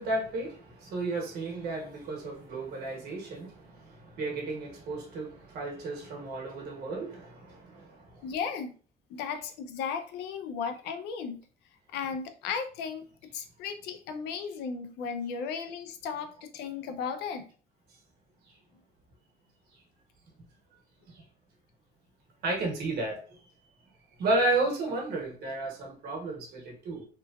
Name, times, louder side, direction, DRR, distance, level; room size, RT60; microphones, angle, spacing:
voice 1, 0.0-8.0 21.1-21.2 22.4-23.2 24.2-27.1, right 2 dB, 70° right, 1.1 m, -33 dB
voice 2, 8.2-8.7 9.1-11.4 11.9-13.0 13.3-17.5, left 6 dB, 85° left, 0.5 m, -35 dB
3.0 x 2.2 x 2.3 m
cardioid pair, 110°, 17 cm